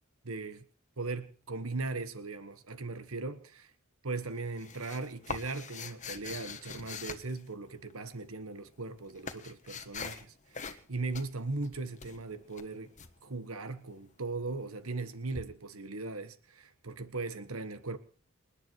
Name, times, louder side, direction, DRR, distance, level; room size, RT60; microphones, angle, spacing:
voice 1, 0.2-0.6 1.0-3.7 4.0-12.9 13.2-18.0, right 3 dB, 85° right, 1.5 m, -38 dB
sound 1, 4.1-8.0 8.7-10.3 10.5-10.9 11.1-13.1 15.3-15.4, left 5 dB, 35° left, 1.6 m, -43 dB
28.5 x 11.0 x 4.7 m
head